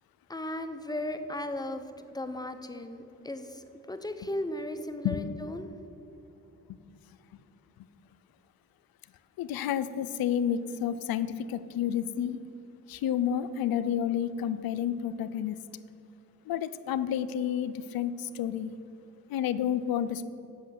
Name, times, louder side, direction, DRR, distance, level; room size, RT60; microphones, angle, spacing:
voice 1, 0.3-5.7, left 1 dB, 10° left, 9 dB, 0.8 m, -36 dB
voice 2, 9.4-12.4 12.9-15.6 16.5-18.7 19.3-20.2, left 9 dB, 80° left, 14 dB, 0.5 m, -30 dB
8.1 x 6.4 x 6.5 m, 3.0 s
supercardioid pair, 50°, 35 cm